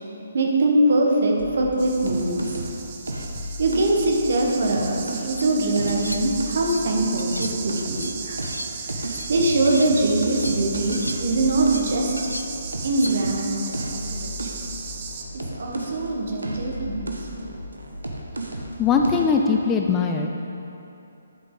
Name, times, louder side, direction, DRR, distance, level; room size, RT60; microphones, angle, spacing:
voice 1, 0.3-2.6 3.6-8.4 8.8-12.1 12.8-13.7 13.9-14.6 15.3-17.5, right 2 dB, 50° right, 0 dB, 1.3 m, -23 dB
sound 1, 1.4-5.4 5.7-8.1 8.4-16.1 16.4-18.8 19.0-19.4, right 1 dB, 75° right, 0.9 m, -34 dB
sound 2, 1.8-15.2, right 6 dB, 30° right, 0.7 m, -36 dB
sound 3, 5.0-5.5 5.9-6.9 7.2-9.9 10.2-13.4, left 1 dB, 90° left, 0.5 m, -37 dB
voice 2, 18.8-20.3, left 5 dB, 15° left, 2 dB, 0.4 m, -20 dB
11.0 x 5.9 x 3.9 m, 2.8 s
figure-of-eight pair, 140°, 0 cm